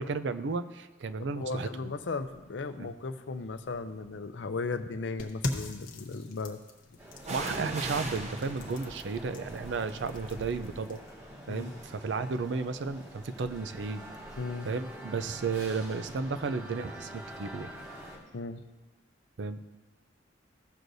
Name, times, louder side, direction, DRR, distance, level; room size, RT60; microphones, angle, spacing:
voice 1, 0.0-1.9 2.8-2.9 7.3-11.0 11.5-14.0 14.6-17.7 19.4-19.6, right 4 dB, 75° right, 11 dB, 0.5 m, -33 dB
voice 2, 1.3-6.6 11.5-11.8 14.4-14.7 18.3-18.6, left 3 dB, 75° left, 10 dB, 0.5 m, -36 dB
sound 1, 2.3-2.6 3.4-4.3 7.2-14.9 15.1-15.2, right 2 dB, 40° right, 0.8 m, -43 dB
sound 2, 5.2-11.0, left 2 dB, 50° left, 0.9 m, -41 dB
sound 3, 7.0-18.2, right 1 dB, 15° right, 1.4 m, -47 dB
15.5 x 6.3 x 2.6 m, 1.2 s
head